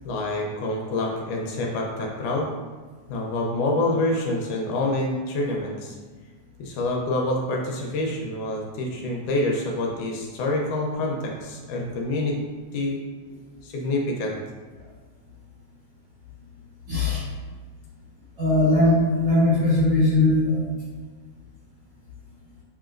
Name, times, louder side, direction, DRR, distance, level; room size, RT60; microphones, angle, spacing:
voice 1, 0.1-2.5 3.1-6.0 6.6-12.4 12.7-13.0 13.6-14.4, left 2 dB, 80° left, -1 dB, 2.0 m, -27 dB
voice 2, 16.9-17.2 18.4-20.6, left 2 dB, 60° right, -8 dB, 1.8 m, -19 dB
7.1 x 3.0 x 2.5 m, 1.4 s
omnidirectional pair, 3.7 m